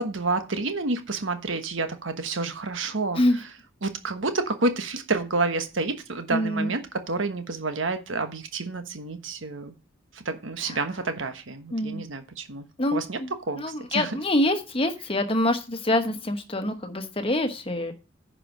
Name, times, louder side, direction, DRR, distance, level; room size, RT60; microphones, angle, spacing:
voice 1, 0.0-3.2 3.8-6.8 7.1-9.7 10.1-12.7 12.9-13.2 13.5-14.1, right 3 dB, 85° right, 8 dB, 1.3 m, -29 dB
voice 2, 6.3-6.7 10.7-10.8 11.7-12.0 12.8-17.9, left 1 dB, 30° left, 8 dB, 1.1 m, -26 dB
10.0 x 5.0 x 6.1 m, 0.31 s
head